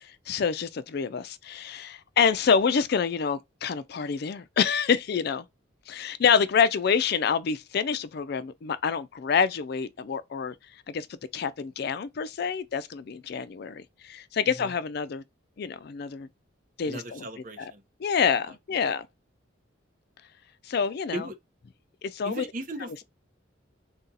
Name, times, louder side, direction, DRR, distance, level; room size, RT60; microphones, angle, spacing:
voice 1, 0.0-5.5 5.9-10.5 10.9-11.1 11.3-15.2 15.6-16.3 16.8-17.3 17.6-17.7 18.0-19.1 20.6-21.3 22.0-22.4, left 6 dB, 50° left, 0.4 m, -27 dB
voice 2, 16.8-17.8 18.5-18.6 21.1-21.3 22.2-23.0, right 1 dB, 40° right, 0.8 m, -37 dB
2.7 x 2.3 x 3.8 m
head